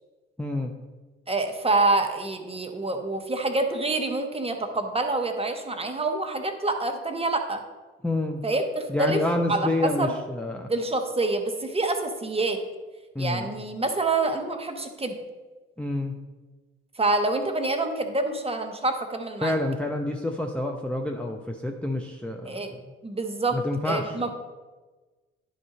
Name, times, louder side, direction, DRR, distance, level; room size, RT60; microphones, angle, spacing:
voice 1, 0.4-0.7 8.0-8.4 8.9-10.7 13.1-13.5 15.8-16.2 19.4-22.8 23.5-24.3, left 1 dB, 5° left, 1 dB, 0.7 m, -28 dB
voice 2, 1.3-7.6 8.4-9.2 9.5-10.2 10.7-12.6 13.2-15.2 16.9-19.5 22.4-22.7 23.0-23.6 23.8-24.3, right 2 dB, 20° right, 5 dB, 1.2 m, -26 dB
11.0 x 3.8 x 5.0 m, 1.3 s
figure-of-eight pair, 50°, 31 cm